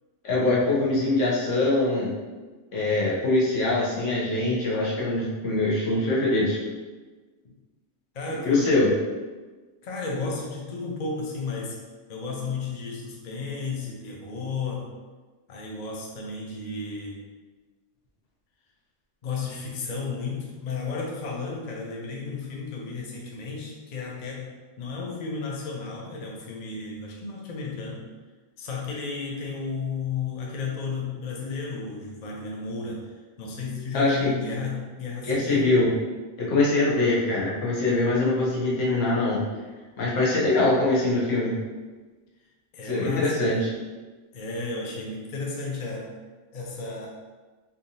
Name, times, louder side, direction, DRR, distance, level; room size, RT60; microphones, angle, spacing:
voice 1, 0.2-2.1 2.7-6.6 8.4-8.9 33.9-34.3 35.3-35.9 36.4-39.4 40.0-41.6 42.8-43.7, left 2 dB, 80° left, -6 dB, 1.2 m, -23 dB
voice 2, 8.1-8.9 9.8-11.8 12.1-14.9 15.5-17.2 19.2-28.1 28.6-35.8 42.7-43.6 44.3-46.1 46.5-47.1, left 4 dB, 45° left, -2 dB, 0.6 m, -33 dB
3.6 x 2.8 x 2.6 m, 1.3 s
omnidirectional pair, 1.2 m